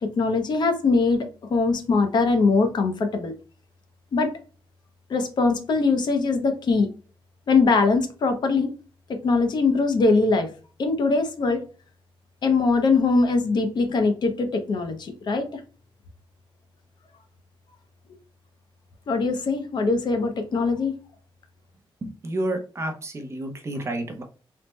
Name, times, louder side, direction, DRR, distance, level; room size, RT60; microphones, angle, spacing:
voice 1, 0.0-3.3 4.1-4.3 5.1-6.9 7.5-8.7 9.1-10.5 10.8-11.6 12.4-15.6 19.1-21.0, left 4 dB, 50° left, 6 dB, 0.5 m, -22 dB
voice 2, 22.2-24.2, right 1 dB, 30° right, 4 dB, 0.5 m, -30 dB
3.3 x 2.0 x 3.0 m, 0.37 s
wide cardioid pair, 175°, 9 cm